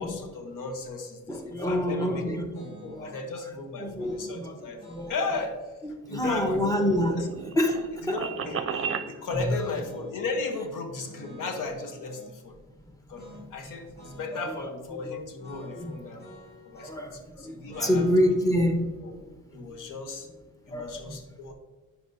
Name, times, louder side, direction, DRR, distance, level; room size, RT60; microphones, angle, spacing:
voice 1, 0.0-2.3 2.5-5.5 6.1-6.6 7.0-7.3 8.1-8.7 9.1-12.6 13.1-13.2 13.5-16.2 16.6-18.1 19.0-19.1 19.5-20.3 20.7-21.5, left 3 dB, 85° left, 5 dB, 1.1 m, -35 dB
voice 2, 1.3-3.1 3.8-4.6 4.8-5.1 6.1-7.3 7.5-8.2 9.3-9.5 14.3-14.7 15.8-16.2 16.8-19.0 20.7-21.2, left 1 dB, 10° left, 3 dB, 1.0 m, -27 dB
sound 1, 2.5-3.2 4.0-5.5 6.5-7.9 8.6-10.1 11.0-12.3 13.1-13.5 13.7-14.6 15.4-17.1 17.6-20.7, right 1 dB, 30° left, 2.2 m, -50 dB
sound 2, 6.0-9.1, right 6 dB, 45° right, 0.5 m, -34 dB
10.0 x 4.7 x 2.7 m, 1.2 s
cardioid pair, 105°, 31 cm